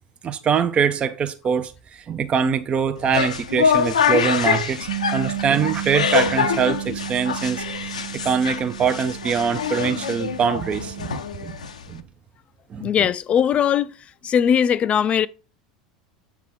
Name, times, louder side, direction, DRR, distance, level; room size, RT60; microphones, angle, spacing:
voice 1, 0.2-11.1 11.4-11.5 11.9-12.0 12.7-12.9, right 7 dB, 30° right, 0.5 m, -23 dB
sound 1, 3.0-12.0, left 6 dB, 85° left, 0.6 m, -25 dB
Bass guitar, 4.9-11.1, right 17 dB, 80° right, 0.7 m, -33 dB
voice 2, 12.8-13.9 14.2-15.3, left 8 dB, 35° left, 0.4 m, -19 dB
7.3 x 3.5 x 5.8 m
hypercardioid pair, 80°, 4 cm